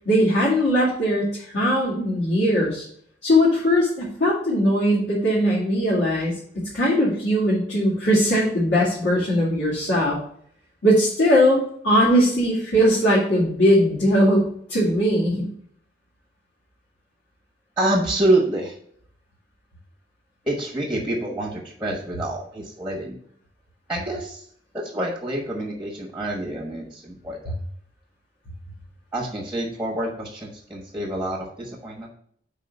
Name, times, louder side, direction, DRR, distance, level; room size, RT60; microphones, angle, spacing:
voice 1, 0.1-2.8 3.2-10.2 10.8-15.5, equal, 85° left, -8 dB, 2.1 m, -20 dB
voice 2, 17.8-18.7 20.4-23.2 23.9-24.4 24.7-27.6 29.1-32.1, right 1 dB, 5° right, -2 dB, 1.2 m, -27 dB
5.5 x 4.2 x 5.2 m, 0.63 s
head